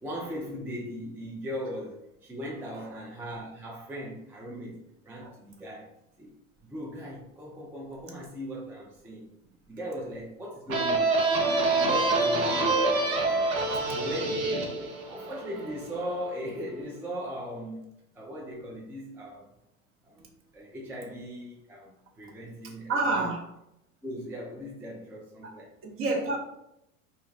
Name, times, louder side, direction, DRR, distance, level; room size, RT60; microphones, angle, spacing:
voice 1, 0.0-5.9 6.2-9.3 9.7-11.5 11.8-14.6 15.1-19.5 20.0-20.2 20.5-23.2 24.0-25.7, equal, 5° right, -4 dB, 0.3 m, -39 dB
sound 1, 10.7-16.1, right 2 dB, 80° right, 0.8 m, -26 dB
voice 2, 22.9-23.5 25.4-25.5 25.8-26.4, right 3 dB, 35° right, 2 dB, 0.7 m, -29 dB
2.4 x 2.1 x 3.9 m, 0.83 s
hypercardioid pair, 85°, 40 cm